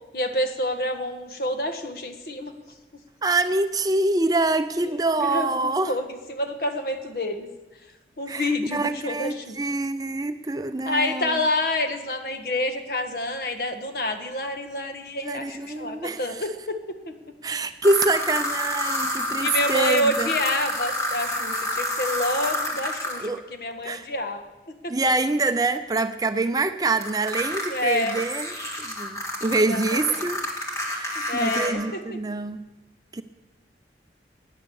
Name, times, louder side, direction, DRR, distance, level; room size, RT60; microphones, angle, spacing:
voice 1, 0.1-2.5 5.2-7.5 8.2-9.6 10.9-17.0 19.4-24.4 24.8-24.9 27.7-28.2 29.7-30.2 31.3-32.0 32.3-32.4, left 1 dB, 55° left, 6 dB, 1.4 m, -28 dB
voice 2, 3.2-6.0 8.3-11.4 15.2-16.4 17.4-20.3 23.2-23.5 23.8-24.1 24.9-30.4 30.9-32.7 33.1-33.2, right 2 dB, 20° right, 9 dB, 0.5 m, -25 dB
sound 1, 17.8-23.3 27.0-31.7, left 1 dB, 15° left, 2.1 m, -29 dB
17.0 x 10.0 x 7.0 m, 1.1 s
head